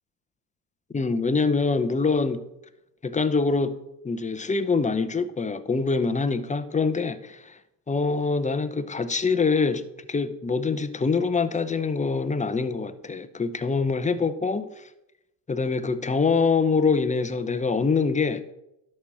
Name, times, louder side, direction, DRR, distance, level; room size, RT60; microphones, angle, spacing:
voice 1, 0.9-2.4 3.0-3.7 4.0-7.6 7.9-9.8 10.1-14.8 15.5-18.4, left 4 dB, 15° left, 0.8 m, -24 dB
11.0 x 4.4 x 7.2 m
hypercardioid pair, 60°, 50 cm